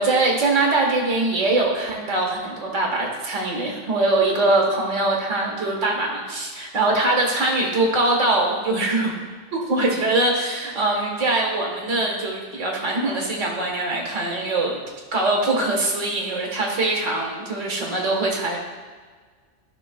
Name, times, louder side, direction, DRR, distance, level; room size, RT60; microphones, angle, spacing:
voice 1, 0.0-9.1 9.5-14.8 15.1-18.6, right 2 dB, 80° right, -1 dB, 1.8 m, -22 dB
15.0 x 5.6 x 2.3 m, 1.5 s
omnidirectional pair, 1.3 m